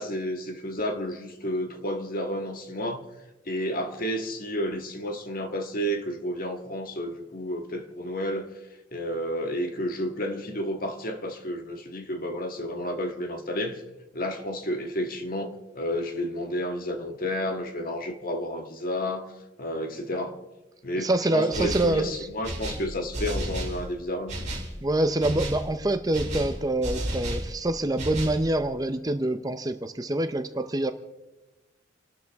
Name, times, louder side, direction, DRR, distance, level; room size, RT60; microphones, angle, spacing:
voice 1, 0.0-3.0 3.5-8.5 8.9-13.8 14.1-19.3 19.6-20.4 20.8-24.4, equal, 45° left, 1.6 m, -31 dB
voice 2, 21.0-22.3 24.8-30.9, right 1 dB, 20° right, 0.7 m, -26 dB
sound 1, 21.5-22.0 22.4-23.8 24.3-24.7 25.2-25.7 26.1-27.5 28.0-28.4, right 1 dB, 40° right, 4.0 m, -32 dB
29.0 x 12.5 x 3.5 m
head